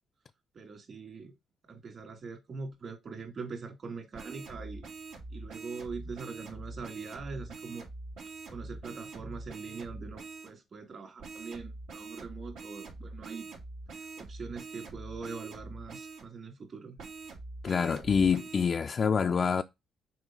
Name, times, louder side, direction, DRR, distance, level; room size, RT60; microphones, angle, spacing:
voice 1, 0.5-1.3 1.7-4.9 5.3-7.9 8.5-13.5 14.0-17.0, right 4 dB, 50° right, 2.4 m, -42 dB
sound 1, 4.1-10.5 11.2-16.2 17.0-18.6, right 3 dB, 90° right, 2.5 m, -44 dB
voice 2, 17.6-19.6, left 6 dB, 45° left, 0.3 m, -26 dB
6.2 x 4.3 x 3.8 m
cardioid pair, 90°, 0 cm